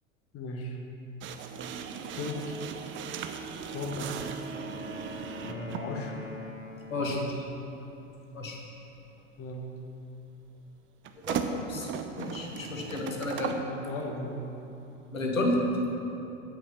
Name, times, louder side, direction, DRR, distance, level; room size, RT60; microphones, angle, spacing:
voice 1, 0.3-0.8 2.2-2.6 3.7-4.2 5.4-6.3 7.1-7.4 9.4-9.7 13.6-14.4, left 2 dB, 35° left, 2 dB, 1.5 m, -37 dB
sound 1, 1.2-5.9 7.0-7.2 11.0-13.7, right 6 dB, 30° right, 0.7 m, -37 dB
Wind instrument woodwind instrument, 3.5-7.3, left 3 dB, 65° left, 1.8 m, -45 dB
voice 2, 11.3-11.9 12.2-13.5 15.1-15.6, left 2 dB, 85° left, 0 dB, 1.6 m, -31 dB
8.6 x 8.1 x 6.0 m, 3.0 s
figure-of-eight pair, 80°, 39 cm